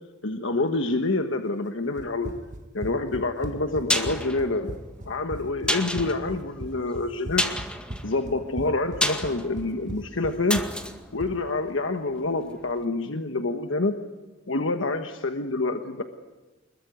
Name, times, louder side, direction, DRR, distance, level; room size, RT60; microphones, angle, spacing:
voice 1, 0.2-2.3 2.7-4.7 5.1-7.5 8.0-10.6 11.1-14.0 14.5-16.0, left 2 dB, 80° left, 6 dB, 1.4 m, -27 dB
Run, 2.0-11.4, right 1 dB, 40° right, 1.4 m, -38 dB
sound 1, 3.5-12.3 12.6-12.7, left 1 dB, 5° left, 2.0 m, -31 dB
26.0 x 22.0 x 9.5 m, 1.2 s
head